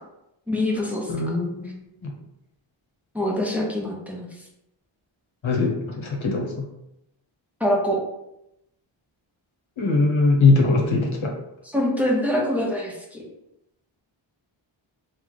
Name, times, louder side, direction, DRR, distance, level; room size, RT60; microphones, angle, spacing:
voice 1, 0.5-1.1 3.1-4.3 7.6-8.0 11.7-13.2, left 1 dB, 5° right, -2 dB, 0.8 m, -24 dB
voice 2, 1.1-1.7 2.0-2.1 5.4-6.7 9.8-11.3, left 3 dB, 75° left, 0 dB, 0.9 m, -21 dB
3.1 x 2.2 x 4.0 m, 0.85 s
wide cardioid pair, 75°, 48 cm